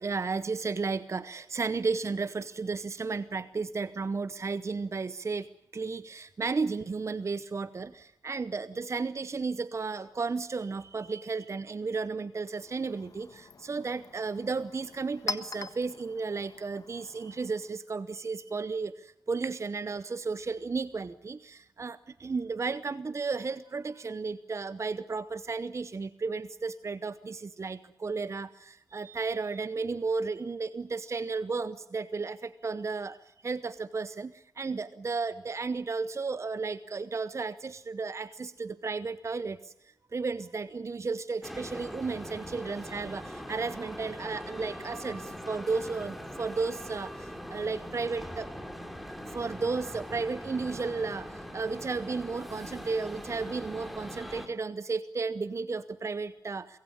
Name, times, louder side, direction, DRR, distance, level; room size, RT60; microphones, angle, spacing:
voice 1, 0.0-5.5 5.7-48.5 49.3-56.8, right 4 dB, 40° right, 15 dB, 0.8 m, -33 dB
Chink clink, 12.3-17.9, left 3 dB, 60° left, 1.5 m, -43 dB
sound 1, 41.4-54.5, equal, ahead, 3.1 m, -42 dB
23.0 x 16.0 x 9.9 m, 0.81 s
cardioid pair, 55°, 7 cm